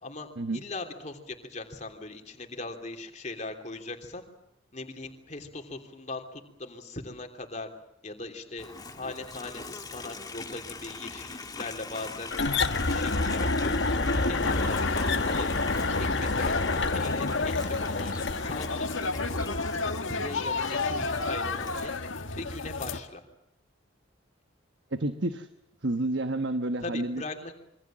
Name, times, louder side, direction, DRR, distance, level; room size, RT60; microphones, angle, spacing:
voice 1, 0.0-4.2 4.7-7.7 8.0-15.6 16.0-19.1 19.5-22.0 22.3-23.2 26.8-27.5, left 2 dB, 35° left, 5 dB, 3.1 m, -40 dB
Livestock farm animals working animals, 8.6-21.9, left 3 dB, 20° left, 1.6 m, -41 dB
sound 1, 12.3-18.7, left 3 dB, 60° left, 1.4 m, -28 dB
sound 2, 14.4-23.0, left 3 dB, 80° left, 1.8 m, -32 dB
voice 2, 24.9-25.5 25.8-27.2, right 2 dB, 60° right, 9 dB, 1.2 m, -29 dB
27.0 x 23.5 x 7.6 m, 0.80 s
head